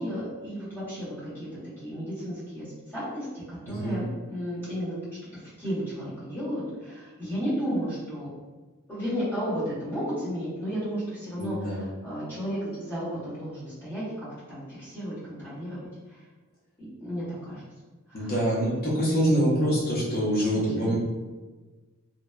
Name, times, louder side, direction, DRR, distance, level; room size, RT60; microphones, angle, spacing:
voice 1, 0.0-1.5 1.8-5.0 5.3-8.3 8.9-16.2 16.8-17.6 18.1-18.3 20.5-20.9, equal, 10° left, -12 dB, 1.2 m, -33 dB
voice 2, 3.7-4.0 11.4-11.9 18.1-21.0, equal, 45° left, -6 dB, 0.6 m, -25 dB
2.8 x 2.0 x 2.3 m, 1.3 s
head